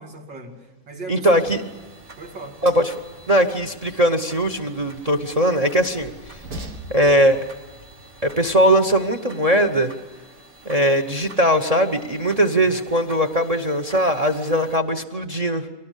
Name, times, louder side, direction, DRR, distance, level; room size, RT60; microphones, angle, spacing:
voice 1, 0.0-1.5 2.2-2.6 12.4-12.9, right 2 dB, 85° right, 2 dB, 3.2 m, -38 dB
voice 2, 1.1-1.6 2.6-2.8 3.3-6.4 6.9-7.4 8.2-9.9 10.6-15.7, equal, 30° right, 8 dB, 0.8 m, -20 dB
Train, 1.2-9.0, right 1 dB, 70° right, 2.3 m, -43 dB
sound 1, 1.3-14.8, right 2 dB, 50° right, 3.8 m, -47 dB
23.0 x 18.5 x 8.2 m, 1.2 s
omnidirectional pair, 1.9 m